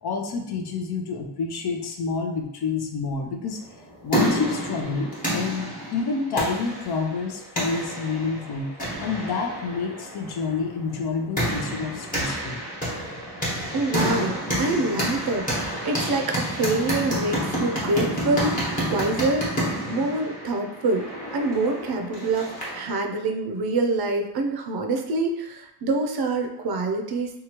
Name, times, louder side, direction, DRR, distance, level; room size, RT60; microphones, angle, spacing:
voice 1, 0.0-3.6 4.0-8.7 9.0-12.6, left 4 dB, 60° left, 3 dB, 0.5 m, -28 dB
sound 1, 3.7-22.9, equal, 20° left, 1.1 m, -29 dB
voice 2, 13.7-15.4 15.8-21.0 21.3-27.3, right 2 dB, 60° right, 4 dB, 0.5 m, -26 dB
2.8 x 2.3 x 2.9 m, 0.85 s
wide cardioid pair, 125°, 44 cm